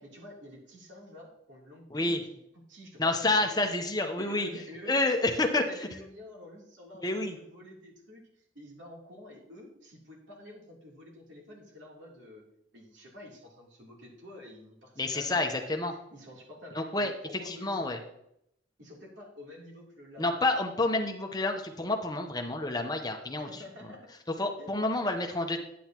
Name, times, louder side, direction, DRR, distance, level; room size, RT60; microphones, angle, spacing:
voice 1, 0.0-2.4 2.7-3.7 4.2-12.5 12.7-15.6 16.1-18.2 18.8-20.5 23.3-24.0 24.6-25.0, left 1 dB, 75° right, -3 dB, 3.2 m, -49 dB
voice 2, 1.9-2.2 3.0-4.5 4.9-5.6 7.0-7.3 15.0-15.9 16.8-17.1 17.5-18.0 20.2-23.5 24.4-25.6, left 2 dB, 20° left, 4 dB, 0.8 m, -29 dB
10.5 x 9.2 x 3.0 m, 0.77 s
head